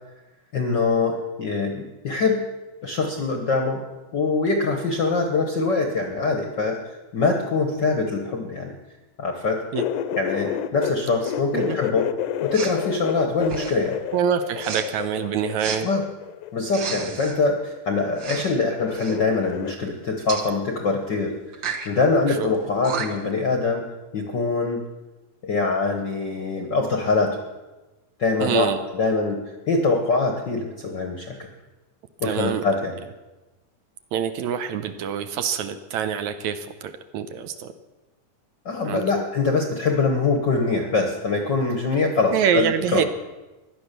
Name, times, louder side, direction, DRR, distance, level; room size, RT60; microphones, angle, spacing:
voice 1, 0.5-2.4 2.8-3.8 4.1-6.8 7.1-8.7 9.2-9.6 10.1-12.1 12.4-13.9 15.8-16.0 16.5-23.8 24.1-24.8 25.4-27.4 28.2-29.4 29.7-31.5 32.2-33.0 38.6-43.0, left 3 dB, 55° left, 4 dB, 1.2 m, -23 dB
sound 1, 9.7-10.9 11.2-16.7 17.7-18.3 18.6-19.7, left 11 dB, 80° left, 2.2 m, -30 dB
Respiratory sounds, 12.5-12.8 13.4-13.9 14.6-14.9 15.6-15.8 16.7-17.4 18.2-18.6 18.9-19.2 20.3-20.5 21.5-21.9 22.5-22.6 22.8-23.3, right 6 dB, 50° right, 1.5 m, -32 dB
voice 2, 14.1-15.9 22.3-22.5 28.4-28.8 32.2-32.6 34.1-37.7 38.9-39.2 42.3-43.0, right 8 dB, 75° right, 10 dB, 2.0 m, -25 dB
16.0 x 11.5 x 6.8 m, 1.1 s
omnidirectional pair, 3.6 m